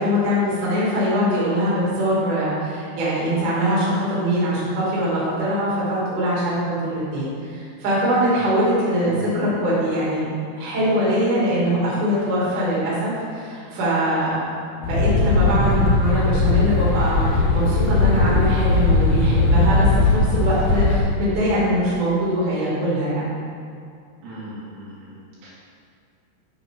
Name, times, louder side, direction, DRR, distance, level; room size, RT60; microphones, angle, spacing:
voice 1, 0.0-10.3 10.6-14.5 14.8-23.3, equal, 55° right, -8 dB, 3.6 m, -22 dB
sound 1, 14.8-21.0, left 3 dB, 70° left, 2.2 m, -18 dB
voice 2, 24.2-25.5, right 1 dB, 80° right, -9 dB, 4.4 m, -39 dB
10.0 x 7.1 x 3.7 m, 2.3 s
omnidirectional pair, 4.7 m